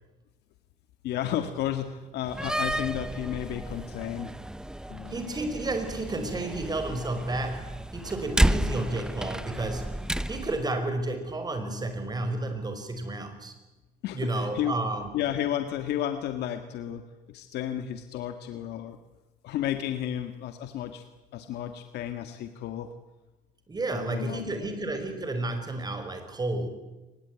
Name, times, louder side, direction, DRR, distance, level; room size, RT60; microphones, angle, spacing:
voice 1, 1.0-4.4 4.9-5.2 14.0-14.8 15.1-19.0 19.4-21.0 21.3-22.9 23.9-24.7, left 11 dB, 80° left, 8 dB, 1.8 m, -32 dB
Slam, 2.2-10.6, right 1 dB, 5° right, 0.8 m, -31 dB
voice 2, 5.1-10.0 10.3-13.5 14.1-15.1 23.7-26.7, right 2 dB, 25° right, 7 dB, 5.4 m, -31 dB
23.5 x 21.0 x 9.7 m, 1.1 s
cardioid pair, 110°, 17 cm